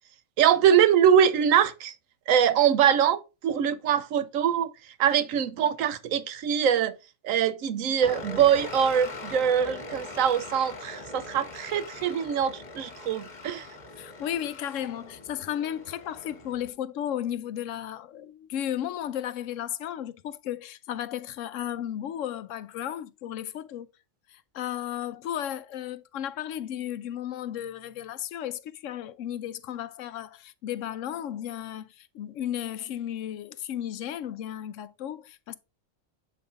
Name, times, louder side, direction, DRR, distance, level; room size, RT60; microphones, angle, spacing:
voice 1, 0.4-1.9 2.3-4.7 5.0-6.9 7.2-13.7, right 8 dB, 85° right, 1.1 m, -23 dB
sound 1, 8.0-16.7, left 3 dB, 35° left, 1.4 m, -41 dB
voice 2, 14.0-23.9 24.3-35.5, left 11 dB, 75° left, 0.9 m, -34 dB
7.8 x 5.1 x 2.5 m
omnidirectional pair, 1.4 m